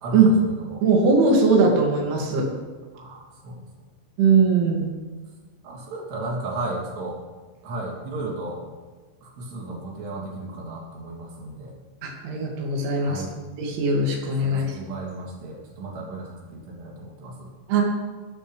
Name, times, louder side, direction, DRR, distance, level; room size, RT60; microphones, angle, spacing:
voice 1, 0.0-0.8 2.9-3.7 5.6-7.2 7.6-8.6 9.2-11.8 13.0-13.3 14.4-17.5, right 2 dB, 65° right, -2 dB, 5.0 m, -34 dB
voice 2, 0.8-2.5 4.2-4.9 12.0-13.2 13.6-14.8 17.7-17.8, right 4 dB, 80° right, 0 dB, 4.9 m, -20 dB
19.5 x 13.5 x 3.5 m, 1.3 s
omnidirectional pair, 5.4 m